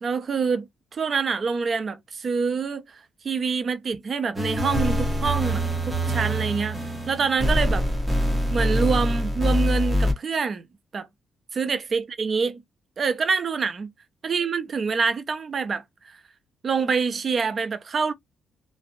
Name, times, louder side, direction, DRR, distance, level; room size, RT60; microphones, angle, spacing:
voice 1, 0.0-0.7 0.9-6.8 7.1-7.8 8.5-10.6 10.9-11.1 11.5-12.6 13.0-13.9 14.2-16.2 16.6-18.1, right 5 dB, 45° right, 0.5 m, -26 dB
sound 1, 4.4-10.1, equal, 10° right, 1.0 m, -24 dB
2.5 x 2.0 x 2.5 m
cardioid pair, 90°, 0 cm